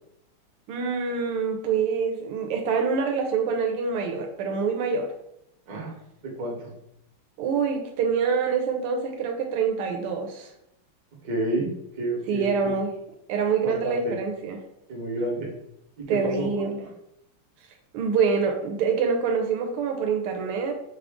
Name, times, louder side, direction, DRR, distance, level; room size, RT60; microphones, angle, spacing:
voice 1, 0.7-5.1 7.4-10.5 12.3-12.9 13.3-14.6 16.1-16.8 17.9-20.7, right 5 dB, 85° right, 3 dB, 1.5 m, -25 dB
voice 2, 6.2-6.7 11.2-11.7 11.9-12.7 13.6-14.1 14.9-15.5 16.0-16.9, right 2 dB, 50° right, -1 dB, 1.4 m, -30 dB
5.2 x 2.5 x 3.4 m, 0.80 s
omnidirectional pair, 2.4 m